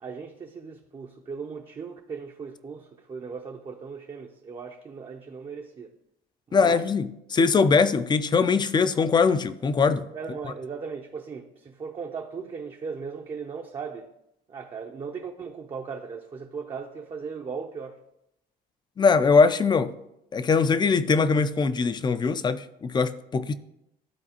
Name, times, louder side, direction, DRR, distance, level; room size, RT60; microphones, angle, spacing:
voice 1, 0.0-5.9 6.5-6.8 10.1-14.1 14.5-18.0, right 5 dB, 30° right, 0.6 m, -37 dB
voice 2, 6.5-10.1 19.0-19.9 20.3-23.5, left 5 dB, 25° left, 0.4 m, -21 dB
12.0 x 4.1 x 2.9 m
cardioid pair, 110°, 17 cm